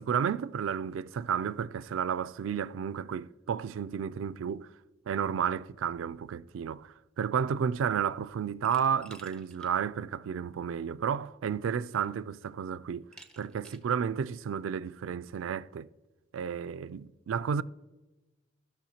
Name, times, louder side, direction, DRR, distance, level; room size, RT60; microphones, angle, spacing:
voice 1, 0.0-4.7 5.1-13.1 13.4-15.9 16.3-17.6, right 7 dB, 75° right, 0.3 m, -32 dB
Glass, 8.6-9.7 10.1-10.2 11.4-11.5 11.9-12.3 13.1-13.9, right 1 dB, 5° left, 0.7 m, -54 dB
15.0 x 6.3 x 2.8 m
head